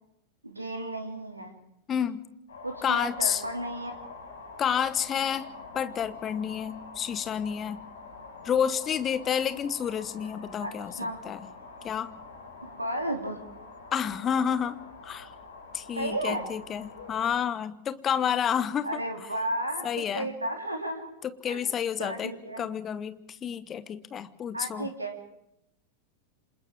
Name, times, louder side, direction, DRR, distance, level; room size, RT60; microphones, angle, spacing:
voice 1, 0.4-1.6 2.6-4.0 10.6-11.2 12.6-13.4 15.9-16.5 18.8-19.8 20.1-21.0 21.5-21.7 22.0-22.7 24.5-25.2, right 1 dB, 85° right, 4 dB, 2.6 m, -33 dB
voice 2, 1.9-2.2 2.8-3.4 4.6-5.5 5.7-7.8 8.4-10.9 11.2-11.5 11.8-12.1 13.9-15.3 15.7-19.0 19.8-20.3 21.2-24.9, left 8 dB, 25° left, 14 dB, 1.2 m, -30 dB
sound 1, 2.5-17.3, left 3 dB, 65° left, 5.8 m, -46 dB
28.0 x 26.5 x 3.6 m, 0.83 s
figure-of-eight pair, 90°, 0 cm